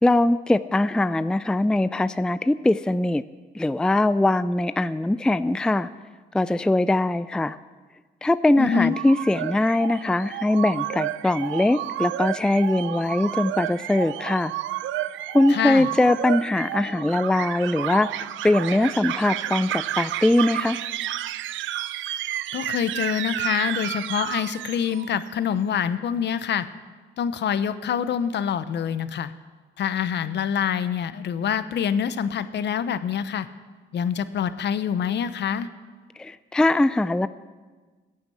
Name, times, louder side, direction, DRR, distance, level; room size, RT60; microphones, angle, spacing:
voice 1, 0.0-3.2 3.5-5.9 6.3-7.6 8.2-14.5 15.3-20.8 36.2-37.3, left 2 dB, 5° left, 14 dB, 0.4 m, -21 dB
voice 2, 8.6-9.0 15.5-15.9 22.5-26.7 27.2-29.3 29.8-33.5 33.9-35.7, left 8 dB, 60° left, 13 dB, 0.9 m, -26 dB
sound 1, 8.6-25.2, right 13 dB, 75° right, 0.6 m, -31 dB
15.0 x 9.6 x 8.5 m, 1.4 s
cardioid pair, 90°, 20 cm